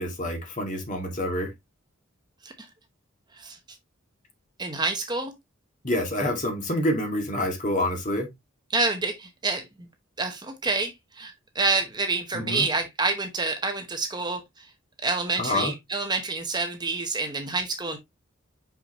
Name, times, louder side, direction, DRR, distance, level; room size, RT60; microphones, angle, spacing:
voice 1, 0.0-1.5 5.8-8.3 12.3-12.7 15.4-15.7, left 1 dB, 40° left, 2.2 m, -27 dB
voice 2, 4.6-5.3 8.7-9.6 10.2-14.7 15.0-18.0, right 3 dB, 20° right, 0.9 m, -28 dB
5.8 x 5.7 x 2.9 m
head